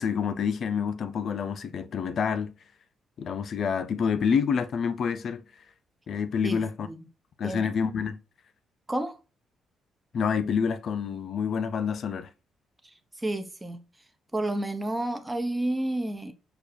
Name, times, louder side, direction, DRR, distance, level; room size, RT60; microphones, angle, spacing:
voice 1, 0.0-2.5 3.2-5.4 6.1-6.9 7.4-8.2 10.1-12.3, left 6 dB, 60° left, 0.4 m, -28 dB
voice 2, 6.4-7.1 7.4-7.7 8.9-9.1 12.8-13.8 14.3-16.3, right 1 dB, 15° right, 0.8 m, -31 dB
6.5 x 2.3 x 2.6 m
cardioid pair, 90°, 0 cm